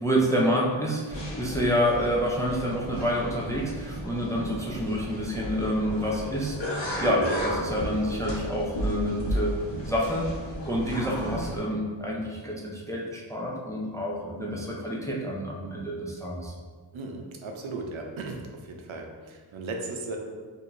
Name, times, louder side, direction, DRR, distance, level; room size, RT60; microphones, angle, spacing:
voice 1, 0.0-9.5 9.9-10.3 10.7-16.5, equal, 5° left, -3 dB, 0.4 m, -28 dB
sound 1, 1.1-11.6, equal, 65° left, 0.9 m, -34 dB
Keyboard (musical), 7.3-9.3, equal, 35° right, 1.5 m, -39 dB
voice 2, 16.9-20.2, right 3 dB, 75° right, 2 dB, 0.6 m, -36 dB
4.5 x 2.6 x 2.5 m, 1.5 s
wide cardioid pair, 115°, 47 cm